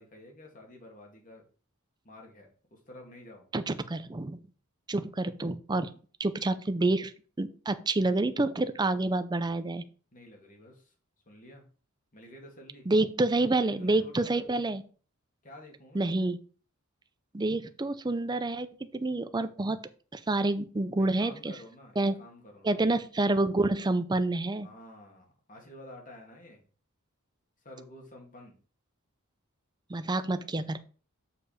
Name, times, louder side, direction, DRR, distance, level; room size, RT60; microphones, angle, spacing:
voice 1, 0.0-1.4 2.0-3.5 10.1-10.9 11.3-11.7 12.1-12.9 13.5-14.4 15.4-16.1 21.0-22.8 24.6-26.6 27.6-28.6, left 1 dB, 40° left, 1 dB, 2.3 m, -50 dB
voice 2, 3.5-4.4 4.9-5.9 6.2-7.1 7.4-9.8 12.9-14.8 15.9-16.4 17.3-18.7 18.9-19.8 20.1-21.5 22.0-22.2 22.6-24.7 29.9-30.8, right 2 dB, 20° right, 11 dB, 0.5 m, -28 dB
6.7 x 5.0 x 5.0 m, 0.39 s
head